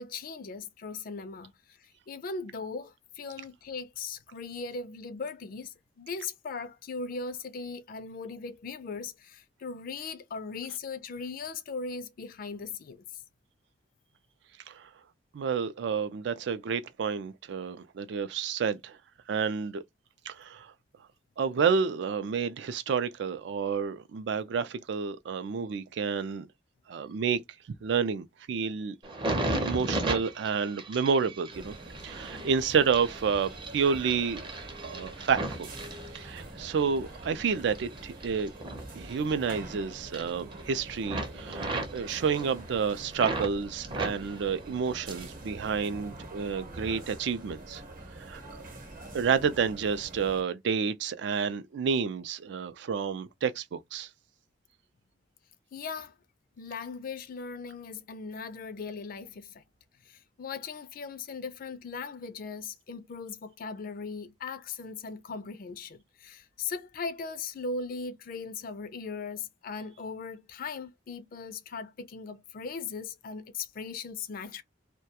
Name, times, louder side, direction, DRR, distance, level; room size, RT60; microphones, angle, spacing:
voice 1, 0.0-1.5 1.8-13.0 29.2-29.7 49.0-49.1 55.7-56.1 56.6-59.6 60.0-74.6, left 4 dB, 50° left, 0.4 m, -39 dB
voice 2, 15.3-19.0 19.3-19.8 20.3-20.7 21.4-26.5 26.9-27.4 27.8-29.0 29.6-31.7 32.0-34.4 34.8-35.7 36.1-38.5 39.0-47.8 48.2-48.4 49.1-54.1, right 6 dB, 70° right, 0.4 m, -30 dB
sound 1, 29.0-36.7 37.1-39.7 40.0-40.7 41.0-43.5 43.8-45.4 45.7-46.4 47.0-47.2, right 2 dB, 25° right, 0.6 m, -36 dB
sound 2, 31.5-50.4, right 2 dB, 50° right, 0.8 m, -45 dB
2.2 x 2.1 x 2.7 m
head